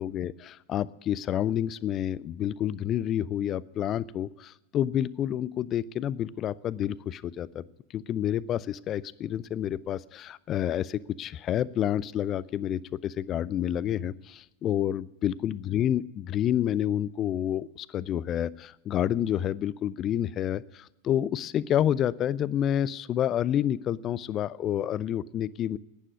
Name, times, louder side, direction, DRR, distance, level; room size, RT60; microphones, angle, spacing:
voice 1, 0.0-7.6 7.9-25.8, left 10 dB, 30° left, 21 dB, 0.5 m, -29 dB
11.5 x 9.9 x 9.6 m, 0.93 s
figure-of-eight pair, 90°, 0 cm